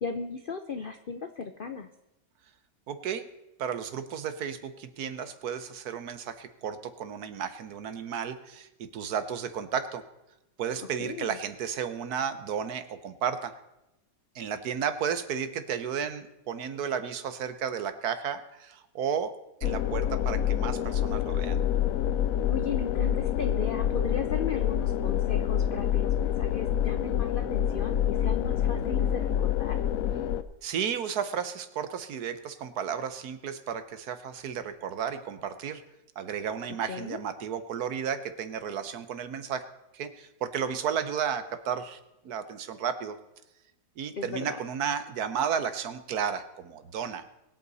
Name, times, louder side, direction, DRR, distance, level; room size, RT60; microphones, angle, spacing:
voice 1, 0.0-1.9 11.0-11.4 22.4-29.8 36.9-37.2 44.2-44.6, left 5 dB, 80° left, 8 dB, 0.4 m, -36 dB
voice 2, 2.9-3.2 3.6-10.0 10.6-13.5 14.3-19.3 19.6-21.6 30.6-35.8 36.2-39.6 39.9-42.0 42.2-43.2 44.0-47.2, right 7 dB, 65° right, 11 dB, 1.3 m, -33 dB
sound 1, 19.6-30.4, left 10 dB, 65° left, 0.9 m, -27 dB
22.5 x 8.3 x 4.1 m, 0.94 s
omnidirectional pair, 1.9 m